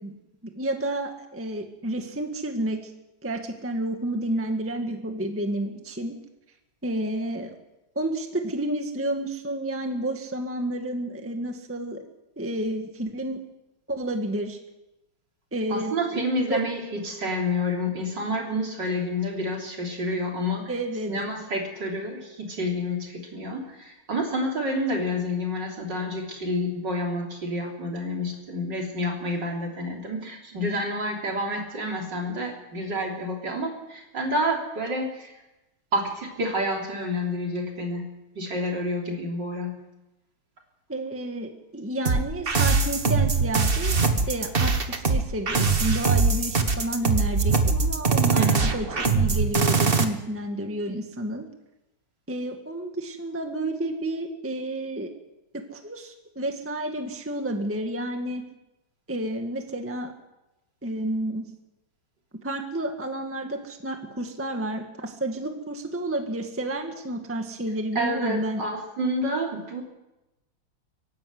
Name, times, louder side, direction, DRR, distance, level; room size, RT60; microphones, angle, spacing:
voice 1, 0.4-2.9 3.2-6.1 6.8-7.5 7.9-12.0 12.4-13.4 13.9-14.6 15.5-15.9 16.5-16.6 20.7-21.1 40.9-44.0 44.3-48.4 48.7-51.4 52.3-55.1 55.7-58.4 59.1-60.1 60.8-61.5 62.4-68.6, right 1 dB, 5° right, 4 dB, 1.6 m, -30 dB
voice 2, 15.7-20.7 21.1-35.4 35.9-39.8 48.3-48.7 68.0-69.8, equal, 55° right, 0 dB, 4.0 m, -29 dB
sound 1, 42.1-50.0, right 4 dB, 30° right, 1.3 m, -22 dB
24.0 x 11.0 x 9.6 m, 0.98 s
omnidirectional pair, 2.4 m